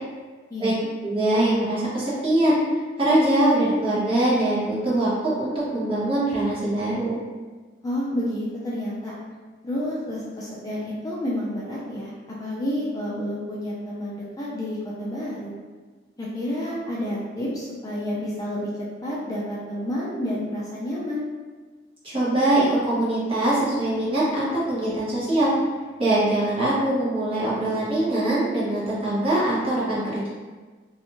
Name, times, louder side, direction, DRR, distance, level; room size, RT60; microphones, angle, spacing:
voice 1, 0.5-0.9 7.8-9.1 9.6-12.1 12.4-15.5 16.2-18.7 19.0-21.2, left 1 dB, 20° left, -6 dB, 0.4 m, -29 dB
voice 2, 1.0-2.6 3.0-7.1 22.0-25.5 26.0-30.3, right 1 dB, 30° right, -8 dB, 0.9 m, -22 dB
2.5 x 2.3 x 2.9 m, 1.4 s
head